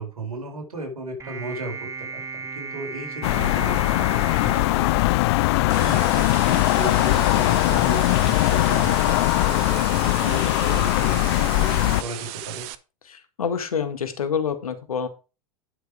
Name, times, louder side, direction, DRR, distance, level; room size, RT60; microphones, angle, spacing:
voice 1, 0.0-9.2 9.5-12.7, right 2 dB, 80° right, 2 dB, 4.7 m, -35 dB
sound 1, 1.2-5.7, right 4 dB, 15° right, 2.5 m, -36 dB
sound 2, 3.2-12.0, left 19 dB, 50° left, 0.4 m, -20 dB
sound 3, 5.7-12.7, right 14 dB, 45° right, 0.9 m, -36 dB
voice 2, 13.1-15.1, left 6 dB, 75° left, 9 dB, 1.8 m, -27 dB
9.8 x 6.8 x 4.9 m, 0.31 s
figure-of-eight pair, 95°, 19 cm